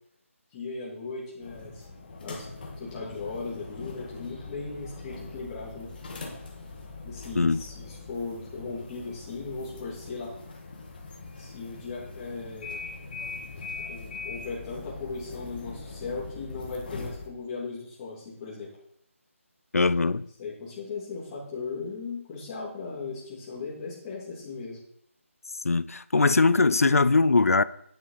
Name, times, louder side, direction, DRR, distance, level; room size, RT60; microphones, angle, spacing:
voice 1, 0.5-1.9 2.2-2.4 2.8-5.9 7.0-10.3 11.4-12.8 13.9-18.7 20.4-24.8, left 4 dB, 20° left, 3.1 m, -37 dB
sound 1, 1.4-17.3, left 3 dB, 40° left, 1.7 m, -41 dB
voice 2, 19.7-20.3 25.6-27.6, left 3 dB, 85° left, 0.5 m, -21 dB
9.5 x 7.5 x 4.1 m
figure-of-eight pair, 160°, 8 cm